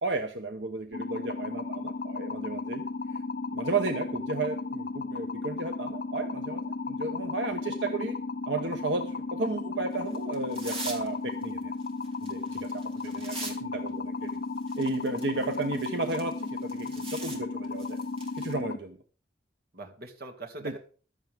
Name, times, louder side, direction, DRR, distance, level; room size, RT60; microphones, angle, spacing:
voice 1, 0.0-2.8 3.1-3.2 3.5-8.2 8.5-11.7 12.2-14.4 14.8-18.0 18.3-19.0 20.6-20.7, right 3 dB, 80° right, 6 dB, 1.0 m, -33 dB
sound 1, 0.9-18.8, left 3 dB, 55° left, 0.5 m, -35 dB
sound 2, 9.9-11.1 11.4-13.5 13.9-14.0 14.6-17.4 17.6-18.5, right 3 dB, 30° right, 3.3 m, -42 dB
voice 2, 19.7-20.8, right 2 dB, 55° right, 2 dB, 2.2 m, -43 dB
15.0 x 12.0 x 3.6 m, 0.40 s
head